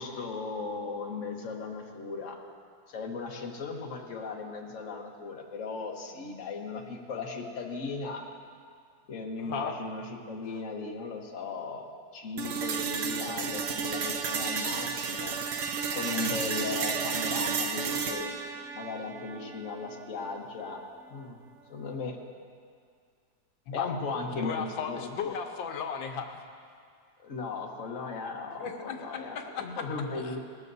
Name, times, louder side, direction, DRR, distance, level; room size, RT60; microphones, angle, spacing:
voice 1, 0.0-2.4 2.9-8.2 9.1-11.9 12.1-15.3 15.9-18.3 18.7-20.8 21.1-21.4 21.7-22.2 23.7-25.3 27.2-30.4, left 4 dB, 45° left, 0 dB, 1.5 m, -37 dB
voice 2, 9.4-9.7 23.7-23.9 24.3-26.4 28.6-29.8 30.2-30.4, left 6 dB, 85° left, 4 dB, 1.6 m, -35 dB
sound 1, 12.4-20.4, right 5 dB, 60° right, 0.8 m, -32 dB
19.5 x 13.5 x 2.7 m, 2.2 s
omnidirectional pair, 2.0 m